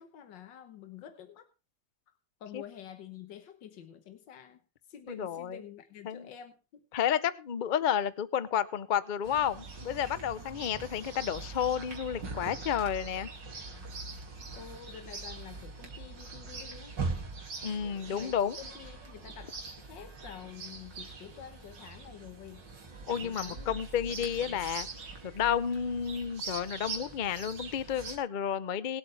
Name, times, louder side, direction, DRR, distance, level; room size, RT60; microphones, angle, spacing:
voice 1, 0.0-1.5 2.4-4.6 4.9-6.8 14.6-17.0 17.8-22.7 23.2-23.7 24.1-24.7, left 10 dB, 80° left, 8 dB, 1.8 m, -48 dB
voice 2, 5.1-5.6 6.1-6.2 6.9-13.3 17.6-18.6 23.1-24.9 25.2-29.0, left 8 dB, 60° left, 15 dB, 0.5 m, -31 dB
Chirp tweet, 9.2-28.2, right 4 dB, 75° right, 3.0 m, -42 dB
22.5 x 8.2 x 3.4 m, 0.32 s
omnidirectional pair, 1.9 m